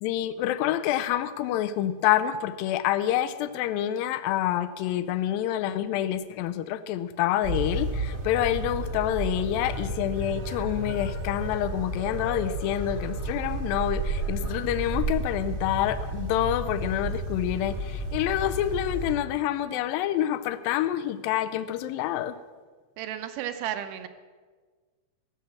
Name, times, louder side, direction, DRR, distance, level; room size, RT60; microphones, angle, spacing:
voice 1, 0.0-22.4, left 12 dB, 85° left, 12 dB, 2.4 m, -27 dB
sound 1, 7.4-19.1, right 1 dB, 55° right, 0.9 m, -32 dB
voice 2, 23.0-24.1, right 10 dB, 75° right, 9 dB, 2.2 m, -33 dB
16.0 x 7.2 x 7.3 m, 1.5 s
omnidirectional pair, 4.1 m